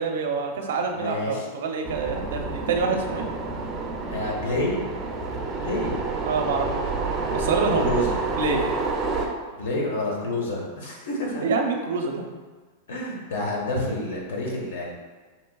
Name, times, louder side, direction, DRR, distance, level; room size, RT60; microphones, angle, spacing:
voice 1, 0.0-3.3 6.2-6.8 7.3-7.9 8.3-8.6 11.4-12.2, right 4 dB, 80° right, 3 dB, 0.6 m, -26 dB
voice 2, 0.9-1.4 4.1-4.8 5.6-6.0 7.6-8.2 9.6-11.5 12.9-14.9, left 1 dB, 75° left, -2 dB, 1.2 m, -28 dB
sound 1, 1.8-9.3, right 3 dB, 15° right, 0.4 m, -29 dB
5.4 x 3.0 x 2.3 m, 1.4 s
supercardioid pair, 170°, 0 cm